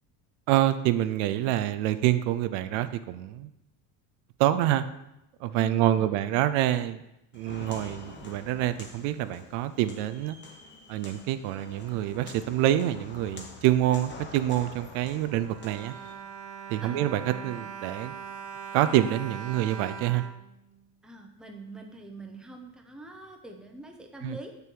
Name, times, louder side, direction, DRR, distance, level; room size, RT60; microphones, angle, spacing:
voice 1, 0.5-3.5 4.4-4.8 5.4-7.0 7.3-10.4 10.9-15.9 16.7-18.1 18.7-20.2 24.2-24.4, right 13 dB, 85° right, 12 dB, 0.7 m, -26 dB
voice 2, 5.5-6.1 16.8-17.1 21.0-24.5, right 1 dB, ahead, 3 dB, 0.7 m, -44 dB
Walk footsteps, 7.3-16.1, left 3 dB, 25° left, 1.1 m, -47 dB
Bowed string instrument, 15.3-21.3 22.0-22.1 22.4-22.5, right 7 dB, 55° right, 0.7 m, -41 dB
6.9 x 6.8 x 4.6 m, 0.87 s
cardioid pair, 145°, 44 cm